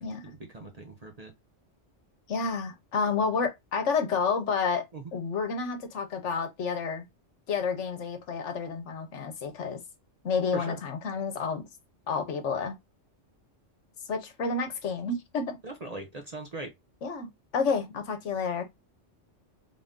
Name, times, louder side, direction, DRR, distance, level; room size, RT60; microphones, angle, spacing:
voice 1, 0.2-1.3 4.9-5.0 10.5-10.8 15.6-16.7, right 2 dB, 40° right, 0.7 m, -40 dB
voice 2, 2.3-4.9 5.1-7.1 7.5-9.8 10.2-11.6 12.1-12.8 14.1-15.6 17.0-18.6, left 5 dB, 75° left, 1.2 m, -30 dB
3.6 x 2.6 x 3.6 m
omnidirectional pair, 1.3 m